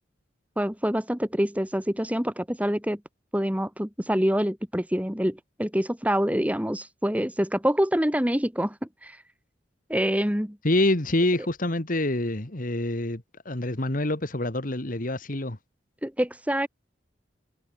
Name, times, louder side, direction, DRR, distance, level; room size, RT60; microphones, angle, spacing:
voice 1, 0.6-3.0 3.3-8.8 9.0-9.2 9.9-10.6 16.0-16.7, equal, 10° right, 2.4 m, -26 dB
voice 2, 10.6-15.6, left 1 dB, 50° left, 2.1 m, -26 dB
head